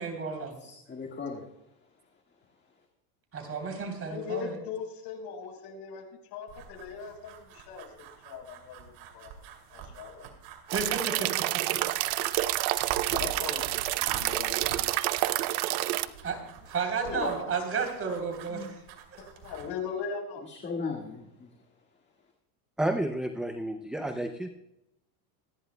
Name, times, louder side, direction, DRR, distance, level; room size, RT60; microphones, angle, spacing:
voice 1, 0.0-0.6 3.3-4.6 10.7-11.3 11.9-12.2 16.2-16.4 16.7-18.8, right 5 dB, 30° right, 2 dB, 3.3 m, -32 dB
voice 2, 0.6-1.4 18.5-18.7 20.5-21.5, left 4 dB, 20° left, 1 dB, 1.7 m, -37 dB
voice 3, 3.9-6.0 6.3-7.9 8.2-9.3 9.7-10.3 13.0-15.0 17.0-17.8 19.2-20.7, left 5 dB, 55° left, 3 dB, 4.6 m, -39 dB
sound 1, 6.5-19.7, right 7 dB, 60° right, 2.6 m, -46 dB
sound 2, 10.7-16.1, right 17 dB, 75° right, 0.8 m, -28 dB
voice 4, 22.8-24.5, right 1 dB, ahead, 6 dB, 0.4 m, -31 dB
25.5 x 10.5 x 2.2 m, 0.86 s
cardioid pair, 135°, 48 cm